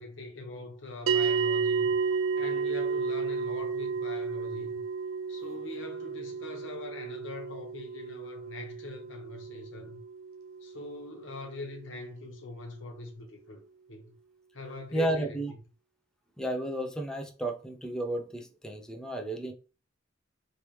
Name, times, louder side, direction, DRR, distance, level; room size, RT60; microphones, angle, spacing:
voice 1, 0.0-4.8 5.3-10.0 10.6-13.6 13.9-14.1 14.5-15.4, left 2 dB, 65° left, 1.0 m, -42 dB
sound 1, 1.1-11.6, right 5 dB, 90° right, 0.4 m, -32 dB
voice 2, 14.9-15.5 16.4-19.5, right 1 dB, 5° left, 0.4 m, -32 dB
3.2 x 3.0 x 3.1 m
head